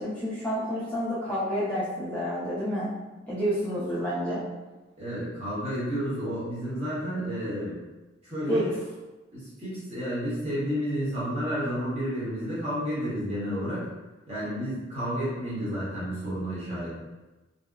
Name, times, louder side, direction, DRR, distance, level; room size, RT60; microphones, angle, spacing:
voice 1, 0.0-2.9 3.3-4.4 8.5-8.6, equal, 10° left, -11 dB, 0.5 m, -29 dB
voice 2, 5.0-7.7 8.2-8.7 9.3-13.9 14.3-16.9, equal, 30° right, -9 dB, 0.9 m, -31 dB
2.7 x 2.0 x 2.3 m, 1.1 s
head